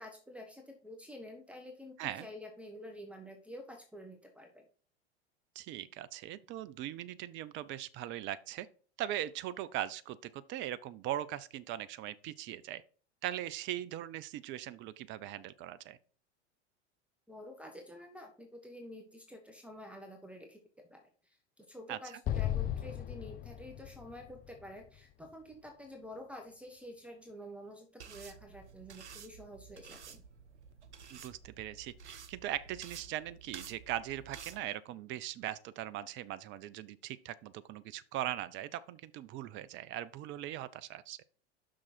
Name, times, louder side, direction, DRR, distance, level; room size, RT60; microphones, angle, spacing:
voice 1, 0.0-4.7 17.3-20.6 20.9-30.2, left 1 dB, 5° right, 1.4 m, -49 dB
voice 2, 5.6-8.7 9.0-12.8 13.2-16.0 21.9-22.0 31.1-41.2, right 13 dB, 35° right, 0.5 m, -40 dB
Explosion, 22.2-25.5, left 12 dB, 25° left, 0.5 m, -37 dB
sound 1, 28.0-34.6, right 6 dB, 85° right, 0.7 m, -51 dB
6.3 x 6.0 x 4.3 m
hypercardioid pair, 85°, 34 cm